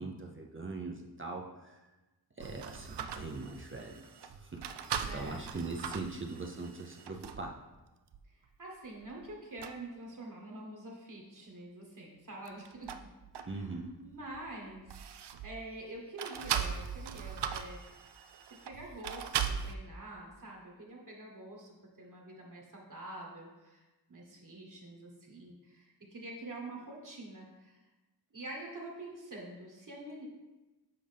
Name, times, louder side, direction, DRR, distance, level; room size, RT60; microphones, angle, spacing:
voice 1, 0.0-1.8 2.4-4.6 5.1-7.6 13.5-13.9, right 3 dB, 30° right, 1 dB, 0.6 m, -41 dB
sound 1, 2.4-7.5 8.1-8.2 8.9-9.3 9.6-9.8 12.3-13.8 14.1-15.7 16.2-19.7, right 8 dB, 80° right, 0.5 m, -39 dB
voice 2, 5.0-5.4 8.6-13.0 13.4-13.7 14.0-18.0 18.5-27.8 28.3-30.3, right 2 dB, 50° right, -1 dB, 1.4 m, -46 dB
7.8 x 5.1 x 3.4 m, 1.1 s
wide cardioid pair, 115°, 40 cm